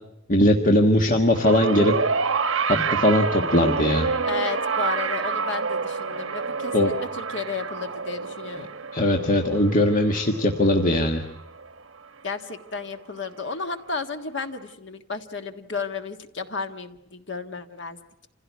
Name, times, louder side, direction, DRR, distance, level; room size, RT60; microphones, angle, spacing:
voice 1, 0.3-1.9 2.7-4.1 6.7-6.9 8.9-11.2, left 1 dB, 40° left, 3 dB, 1.6 m, -20 dB
sound 1, 1.3-11.8 12.8-12.9, right 5 dB, 75° right, 1.1 m, -28 dB
voice 2, 4.2-8.7 12.2-18.0, left 4 dB, 65° left, 7 dB, 1.7 m, -33 dB
27.0 x 16.0 x 9.4 m, 0.86 s
head